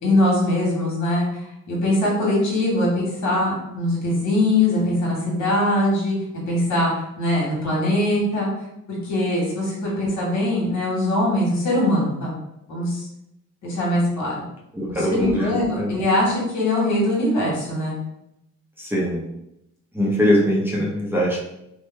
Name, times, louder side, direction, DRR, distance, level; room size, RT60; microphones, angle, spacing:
voice 1, 0.0-6.1 6.5-6.9 7.2-8.5 8.9-12.4 12.7-13.1 13.6-14.4 14.9-18.0, left 1 dB, 65° left, -4 dB, 1.5 m, -22 dB
voice 2, 14.7-15.9 18.8-19.2 19.9-21.4, equal, 5° right, -5 dB, 0.7 m, -22 dB
2.9 x 2.1 x 3.3 m, 0.84 s
cardioid pair, 90°, 30 cm